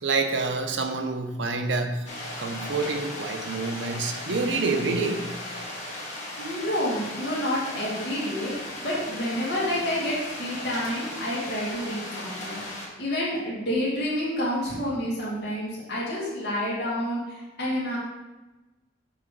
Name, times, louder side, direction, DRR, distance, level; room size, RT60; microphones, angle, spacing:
voice 1, 0.0-2.1 2.4-5.2, right 3 dB, 70° right, 5 dB, 0.7 m, -27 dB
sound 1, 2.1-12.9, left 1 dB, 40° left, 1.5 m, -37 dB
voice 2, 6.4-8.5 8.8-18.0, left 1 dB, 60° left, -7 dB, 2.0 m, -29 dB
6.5 x 3.8 x 4.8 m, 1.1 s
head